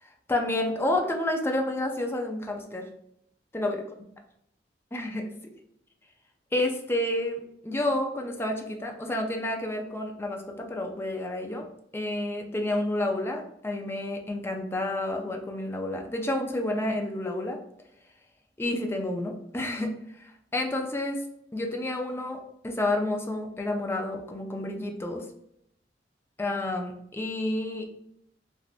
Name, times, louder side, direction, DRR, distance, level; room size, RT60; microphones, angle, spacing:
voice 1, 0.0-2.9 3.5-3.8 4.9-5.3 6.5-11.7 11.9-17.6 18.6-19.9 20.2-21.2 21.5-25.2 26.4-27.9, left 1 dB, 15° left, 3 dB, 0.4 m, -30 dB
3.5 x 2.4 x 2.3 m, 0.73 s
head